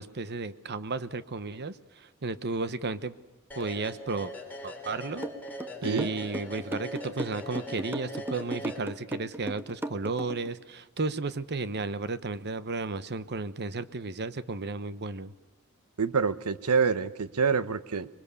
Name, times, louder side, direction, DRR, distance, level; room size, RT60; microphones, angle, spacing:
voice 1, 0.0-3.2 3.6-4.3 4.6-5.3 5.8-15.3, right 3 dB, 50° right, 14 dB, 1.0 m, -33 dB
sound 1, 3.5-9.3, left 1 dB, 10° left, 3.8 m, -41 dB
sound 2, 5.2-10.5, right 1 dB, 10° right, 0.9 m, -36 dB
voice 2, 5.8-6.1 16.0-18.1, right 5 dB, 90° right, 14 dB, 1.0 m, -26 dB
26.0 x 22.0 x 7.0 m, 1.1 s
head